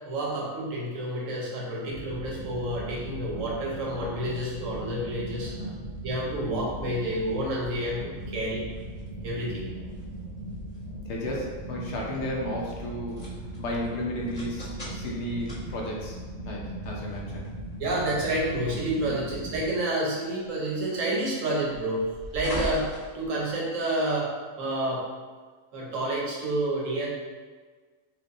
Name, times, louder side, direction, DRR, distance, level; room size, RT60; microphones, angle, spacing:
voice 1, 0.1-5.5 6.0-8.6 9.2-9.7 17.8-22.0 22.3-22.9 23.1-25.1 25.7-27.1, right 1 dB, 70° right, -4 dB, 1.2 m, -29 dB
sound 1, 1.9-19.7, right 1 dB, 50° right, 0.7 m, -39 dB
sound 2, 4.6-23.9, left 2 dB, 30° left, 1.6 m, -44 dB
voice 2, 5.4-6.0 11.0-17.5 19.0-19.1, left 1 dB, 65° left, -3 dB, 0.8 m, -34 dB
4.6 x 2.5 x 2.5 m, 1.4 s
omnidirectional pair, 1.4 m